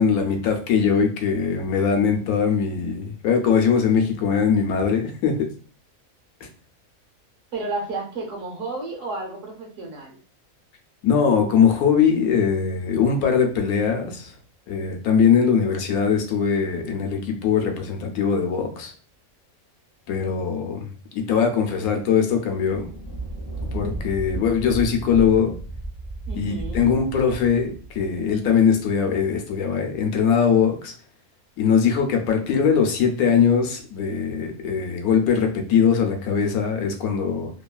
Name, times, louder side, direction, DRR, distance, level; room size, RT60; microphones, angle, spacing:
voice 1, 0.0-5.5 11.0-14.3 14.7-18.9 20.1-22.9 23.7-25.6 26.3-30.9 31.6-37.5, left 6 dB, 80° left, 4 dB, 1.0 m, -21 dB
voice 2, 7.5-10.1 26.3-26.9, right 3 dB, 65° right, 0 dB, 1.1 m, -32 dB
Thunder, 22.7-29.2, right 2 dB, 25° left, 0.4 m, -34 dB
3.0 x 2.2 x 2.3 m, 0.40 s
omnidirectional pair, 1.5 m